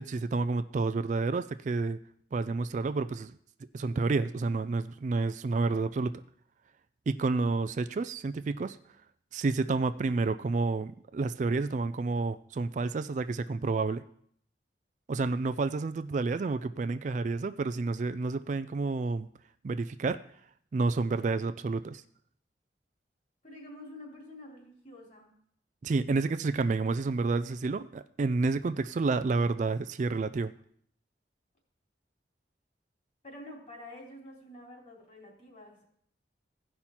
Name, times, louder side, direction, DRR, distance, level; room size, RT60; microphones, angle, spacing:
voice 1, 0.0-2.0 2.3-3.4 3.7-6.1 7.1-8.8 9.3-14.0 15.1-19.3 19.6-20.2 20.7-22.0 25.8-30.5, right 3 dB, 45° right, 12 dB, 0.3 m, -30 dB
voice 2, 23.4-25.3 33.2-35.8, left 1 dB, 45° left, -1 dB, 3.3 m, -48 dB
16.0 x 5.6 x 4.4 m, 0.64 s
head